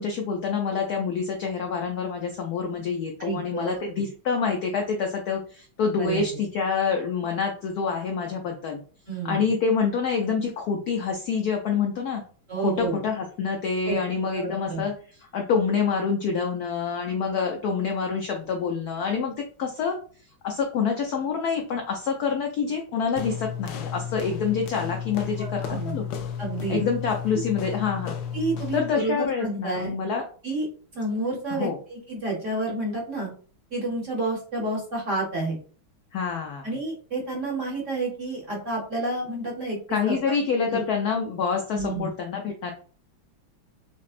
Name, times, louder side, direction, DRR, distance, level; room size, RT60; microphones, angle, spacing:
voice 1, 0.0-8.8 9.2-12.2 12.6-14.9 15.2-19.3 19.6-20.0 20.4-26.0 26.7-28.2 28.7-30.2 31.5-31.8 36.1-36.7 39.9-42.7, left 5 dB, 90° left, 2 dB, 0.8 m, -27 dB
voice 2, 3.2-3.8 6.0-6.2 9.1-9.4 12.5-13.0 13.9-14.0 14.3-14.8 25.4-26.0 26.4-26.8 28.3-29.9 30.4-30.7 30.9-33.3 33.7-35.6 36.6-39.8 40.0-40.2 40.7-40.8 41.7-42.1, right 2 dB, 50° right, -2 dB, 1.0 m, -30 dB
sound 1, 23.2-29.0, left 7 dB, 75° left, 1.1 m, -33 dB
5.7 x 2.1 x 2.4 m, 0.42 s
omnidirectional pair, 2.3 m